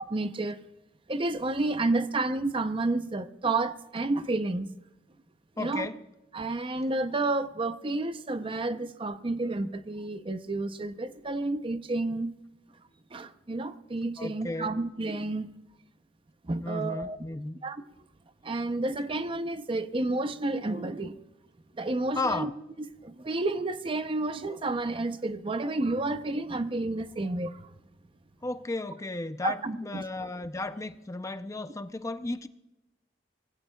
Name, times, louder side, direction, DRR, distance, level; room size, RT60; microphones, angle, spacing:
voice 1, 0.1-0.6 1.1-4.7 5.6-5.9 6.3-12.3 13.1-15.5 16.4-17.2 17.6-17.8 18.4-21.2 21.7-22.5 23.0-27.7 29.4-30.0, right 2 dB, 30° right, 0.6 m, -30 dB
voice 2, 5.6-6.0 14.2-14.7 16.6-17.6 22.2-22.5 28.4-32.5, left 2 dB, 15° left, 0.5 m, -34 dB
25.0 x 19.5 x 2.3 m
head